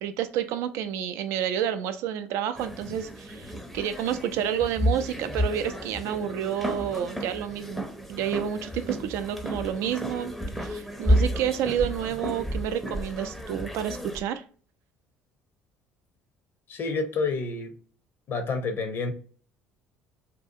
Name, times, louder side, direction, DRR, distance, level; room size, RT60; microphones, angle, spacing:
voice 1, 0.0-10.3 10.6-14.4, right 9 dB, 60° right, 10 dB, 0.4 m, -30 dB
sound 1, 2.6-14.2, equal, ahead, 0.6 m, -31 dB
voice 2, 16.7-17.7 18.3-19.1, left 4 dB, 45° left, 7 dB, 0.6 m, -29 dB
2.7 x 2.3 x 2.6 m, 0.43 s
figure-of-eight pair, 60°, 5 cm